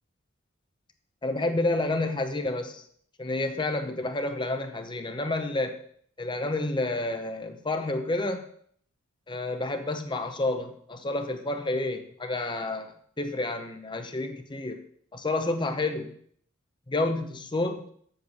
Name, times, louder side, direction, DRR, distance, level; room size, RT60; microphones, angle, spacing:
voice 1, 1.2-2.8 3.2-5.8 6.2-8.5 9.3-14.8 15.1-16.1 16.9-17.9, left 2 dB, 25° left, 7 dB, 0.8 m, -29 dB
8.0 x 6.7 x 6.5 m, 0.62 s
head